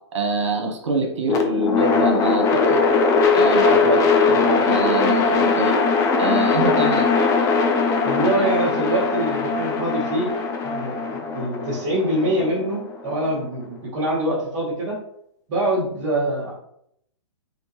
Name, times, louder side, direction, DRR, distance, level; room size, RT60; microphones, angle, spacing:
voice 1, 0.1-2.8 3.3-5.8 6.2-7.1, right 3 dB, 75° right, 2 dB, 1.4 m, -25 dB
sound 1, 1.3-13.4, left 4 dB, 20° left, 0.6 m, -20 dB
voice 2, 8.0-10.3 10.6-15.0 15.5-16.5, right 1 dB, 40° right, -8 dB, 1.8 m, -24 dB
4.2 x 3.9 x 3.2 m, 0.73 s
hypercardioid pair, 135°, 15 cm